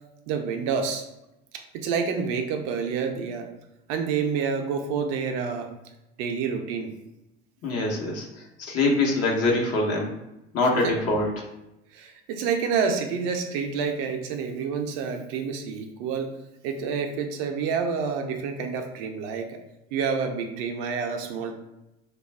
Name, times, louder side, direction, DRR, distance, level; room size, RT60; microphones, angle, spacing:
voice 1, 0.3-1.0 1.5-3.5 3.9-5.7 6.2-6.9 10.8-10.9 11.9-16.3 16.6-19.6 19.9-21.5, right 6 dB, 65° right, 5 dB, 0.5 m, -28 dB
voice 2, 7.6-8.2 8.7-10.1 10.5-11.3, left 2 dB, 45° left, -1 dB, 0.9 m, -23 dB
2.4 x 2.2 x 3.3 m, 0.91 s
hypercardioid pair, 70°, 33 cm